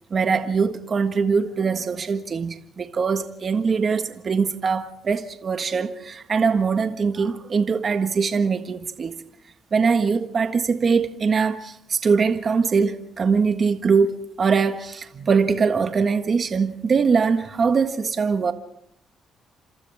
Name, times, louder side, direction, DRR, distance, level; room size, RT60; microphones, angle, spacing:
voice 1, 0.1-9.2 9.7-18.5, right 5 dB, 45° right, 1.6 m, -22 dB
30.0 x 26.5 x 3.6 m
cardioid pair, 90°, 0 cm